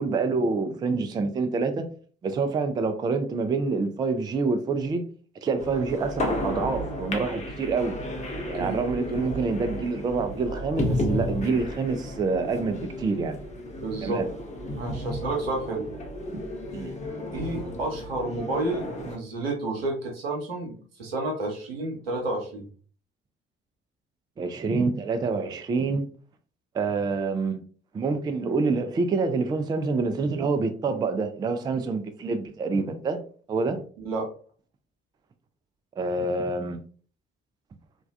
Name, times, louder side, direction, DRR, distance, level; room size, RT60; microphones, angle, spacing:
voice 1, 0.0-1.9 2.2-5.1 5.4-8.0 8.5-13.4 14.0-14.3 16.3-16.4 16.7-16.9 17.6-17.7 24.4-26.1 26.7-27.6 27.9-33.2 33.5-33.8 36.0-36.8, right 4 dB, 15° right, 0.3 m, -27 dB
sound 1, 5.6-19.2, left 1 dB, 25° left, 0.7 m, -33 dB
voice 2, 13.8-14.2 14.7-15.8 17.3-22.7 34.0-34.3, right 2 dB, 80° right, 0.7 m, -30 dB
3.1 x 2.2 x 2.4 m
figure-of-eight pair, 45°, 29 cm